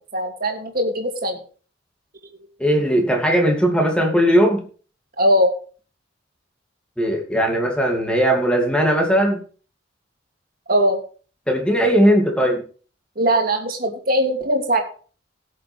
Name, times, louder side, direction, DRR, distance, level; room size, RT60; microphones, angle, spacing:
voice 1, 0.1-1.4 5.2-5.5 10.7-11.0 13.2-14.8, equal, 50° right, 3 dB, 2.7 m, -20 dB
voice 2, 2.6-4.6 7.0-9.4 11.5-12.6, equal, 5° left, 2 dB, 2.5 m, -18 dB
17.5 x 7.4 x 3.4 m, 0.39 s
head